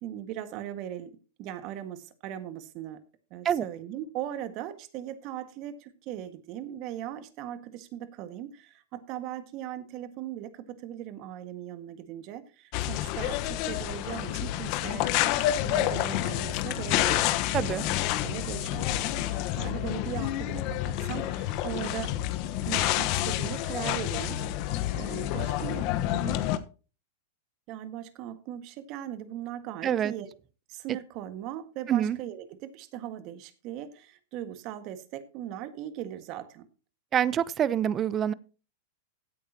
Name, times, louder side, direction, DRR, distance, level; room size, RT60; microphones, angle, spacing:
voice 1, 0.0-3.0 3.3-15.1 15.6-17.3 17.6-22.2 22.7-24.4 24.9-26.4 27.7-30.3 30.7-36.7, right 11 dB, 50° right, 1.7 m, -39 dB
sound 1, 12.7-26.6, left 13 dB, 50° left, 1.1 m, -29 dB
voice 2, 17.5-17.8 29.8-30.1 31.9-32.2 37.1-38.3, right 9 dB, 30° right, 0.7 m, -26 dB
16.0 x 8.8 x 2.9 m
hypercardioid pair, 115°, 0 cm